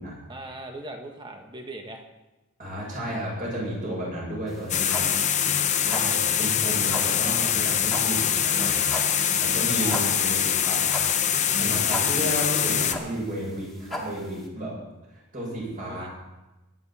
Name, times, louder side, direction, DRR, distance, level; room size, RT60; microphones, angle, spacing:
voice 1, 0.3-2.0 9.8-9.9 15.8-16.1, right 1 dB, 20° right, 3 dB, 1.5 m, -39 dB
voice 2, 2.6-5.1 5.8-8.8 9.4-10.8 11.5-14.7 15.3-16.1, right 1 dB, 40° right, -4 dB, 7.2 m, -32 dB
sound 1, 4.5-14.4, equal, ahead, 2.2 m, -37 dB
sound 2, 4.7-12.9, left 8 dB, 35° left, 0.8 m, -24 dB
24.0 x 10.0 x 4.3 m, 1.0 s
head